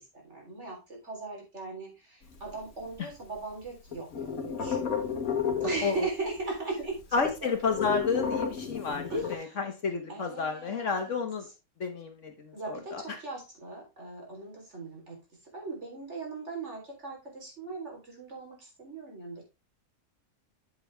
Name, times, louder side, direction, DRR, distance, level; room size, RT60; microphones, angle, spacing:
voice 1, 0.0-4.8 5.6-6.9 7.4-7.7 9.1-9.6 10.1-11.1 12.5-15.2 15.5-19.4, right 3 dB, 55° right, -1 dB, 3.9 m, -39 dB
sound 1, 2.2-3.4 3.7-6.3 6.5-6.6 6.8-9.4, left 7 dB, 85° left, 1.8 m, -32 dB
voice 2, 7.1-11.5 11.8-13.0, left 5 dB, 65° left, 5 dB, 1.6 m, -31 dB
8.5 x 7.4 x 3.3 m, 0.26 s
omnidirectional pair, 1.4 m